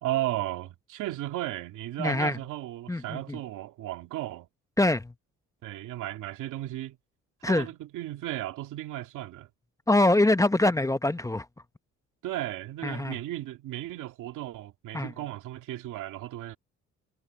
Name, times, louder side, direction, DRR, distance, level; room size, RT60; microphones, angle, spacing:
voice 1, 0.0-4.5 5.6-7.0 7.5-9.5 12.2-16.6, right 15 dB, 90° right, 2.4 m, -35 dB
voice 2, 2.0-2.4 2.9-3.4 4.8-5.1 7.4-7.7 9.9-11.5 12.8-13.2 14.9-15.1, left 2 dB, 10° left, 0.9 m, -24 dB
cardioid pair, 90°, 30 cm